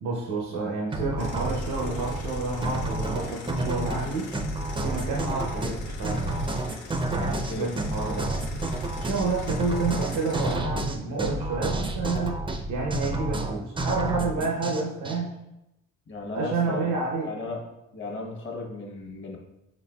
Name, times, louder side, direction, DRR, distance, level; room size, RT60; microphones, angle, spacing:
voice 1, 0.0-4.3 4.8-6.4 7.1-8.3 8.9-15.3 16.3-17.3, right 3 dB, 80° right, -2 dB, 0.8 m, -29 dB
sound 1, 0.9-15.2, right 2 dB, 15° right, 0.5 m, -30 dB
sound 2, 1.2-10.6, left 4 dB, 85° left, 0.7 m, -43 dB
voice 2, 16.1-16.9 17.2-17.6 17.9-19.4, left 2 dB, 40° left, 1 dB, 1.0 m, -35 dB
4.6 x 4.1 x 2.2 m, 0.89 s
cardioid pair, 90°, 30 cm